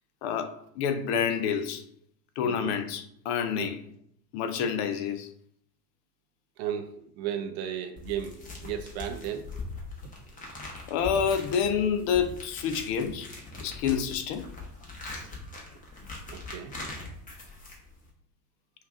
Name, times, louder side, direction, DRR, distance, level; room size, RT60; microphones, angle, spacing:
voice 1, 0.2-1.8 2.4-3.8 4.3-5.3 10.9-13.3 13.6-14.4, left 7 dB, 45° left, 8 dB, 0.5 m, -28 dB
voice 2, 2.4-2.7 3.5-3.7 6.6-9.5 16.3-16.8, right 9 dB, 45° right, 6 dB, 0.5 m, -35 dB
sound 1, 8.0-18.1, left 3 dB, 15° left, 0.9 m, -41 dB
5.2 x 2.4 x 2.5 m, 0.68 s
hypercardioid pair, 95°, 47 cm